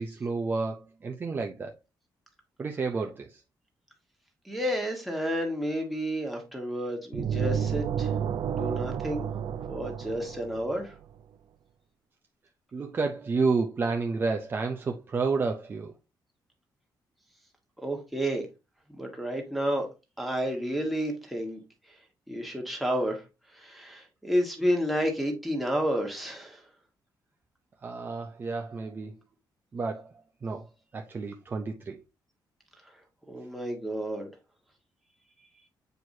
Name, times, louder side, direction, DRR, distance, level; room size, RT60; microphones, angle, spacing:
voice 1, 0.0-1.7 2.6-3.4 12.7-15.9 27.8-29.1 29.7-30.1 30.4-30.7 30.9-32.0, right 4 dB, 25° right, 0.6 m, -30 dB
voice 2, 4.4-8.1 8.4-9.3 9.7-10.9 17.8-18.4 18.9-19.9 20.2-21.6 21.9-22.0 22.3-23.2 23.5-26.6 33.3-34.3, equal, ahead, 1.5 m, -30 dB
sound 1, 7.1-10.9, right 8 dB, 70° right, 0.6 m, -31 dB
7.9 x 4.6 x 2.7 m
wide cardioid pair, 175°, 8 cm